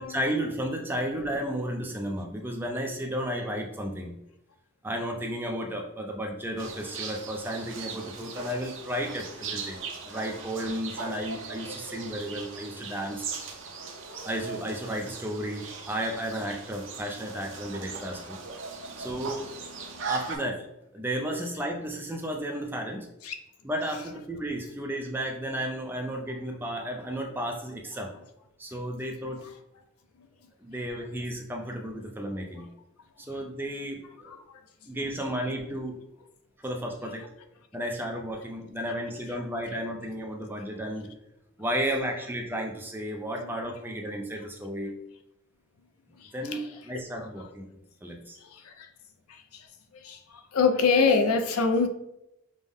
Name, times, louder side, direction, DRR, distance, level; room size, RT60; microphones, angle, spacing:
voice 1, 0.0-4.1 4.8-13.3 14.2-18.4 19.0-19.5 20.0-20.6 20.9-23.1 23.6-28.1 28.6-29.4 30.6-32.7 33.2-34.4 34.9-36.0 36.6-37.3 37.7-41.1 41.6-44.9 46.3-48.4, equal, 10° right, 0.4 m, -33 dB
sound 1, 6.6-20.4, right 4 dB, 55° right, 0.6 m, -39 dB
voice 2, 48.5-48.9 49.3-49.6 49.9-50.2 50.5-51.9, left 4 dB, 80° left, 0.5 m, -25 dB
5.3 x 2.0 x 3.5 m
head